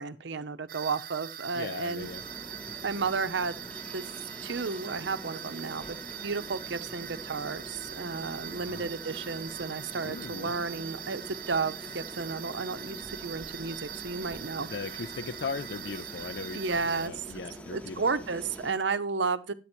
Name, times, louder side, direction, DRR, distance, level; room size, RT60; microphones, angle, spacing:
voice 1, 0.0-2.1 2.8-3.6 3.9-4.1 4.4-6.0 6.2-14.7 16.5-17.3 17.7-19.5, right 4 dB, 85° right, 0.7 m, -32 dB
sound 1, 0.7-17.1, right 11 dB, 50° right, 0.5 m, -42 dB
voice 2, 1.5-2.2 2.6-2.8 8.5-8.9 10.0-10.5 14.6-18.2, left 4 dB, 65° left, 0.5 m, -39 dB
sound 2, 2.0-18.7, equal, 5° left, 0.8 m, -45 dB
11.0 x 8.4 x 4.4 m
head